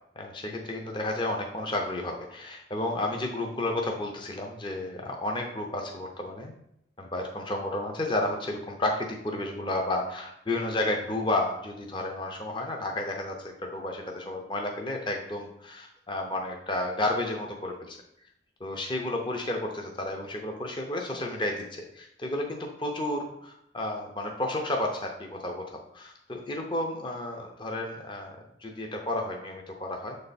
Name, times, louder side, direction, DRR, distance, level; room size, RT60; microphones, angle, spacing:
voice 1, 0.2-6.5 7.0-18.0 18.6-30.2, left 1 dB, 25° left, 2 dB, 0.6 m, -32 dB
7.2 x 3.3 x 4.1 m, 0.77 s
head